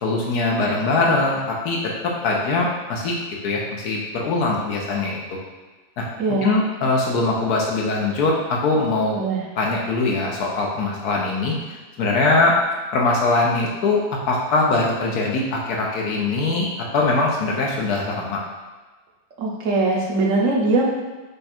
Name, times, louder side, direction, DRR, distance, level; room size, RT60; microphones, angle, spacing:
voice 1, 0.0-1.8 2.2-3.2 3.4-5.2 6.0-6.1 6.4-9.2 9.6-11.6 12.0-12.5 12.9-16.7 16.9-18.4, left 3 dB, 80° left, -2 dB, 1.4 m, -21 dB
voice 2, 6.2-6.6 9.1-9.4 19.4-20.9, right 3 dB, 60° right, -2 dB, 1.0 m, -21 dB
5.1 x 2.4 x 4.3 m, 1.3 s
omnidirectional pair, 1.6 m